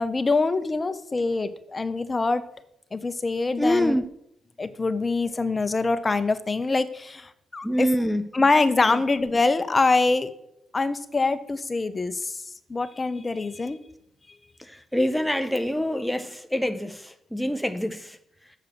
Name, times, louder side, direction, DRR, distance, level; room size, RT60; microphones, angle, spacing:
voice 1, 0.0-2.4 2.9-4.0 4.6-7.9 8.3-10.3 10.7-12.3 12.7-13.8, left 3 dB, 30° left, 0.8 m, -24 dB
voice 2, 3.6-4.1 7.6-8.2 8.8-9.0 14.6-18.2, equal, ahead, 0.7 m, -26 dB
7.0 x 6.6 x 6.6 m
cardioid pair, 65°, 0 cm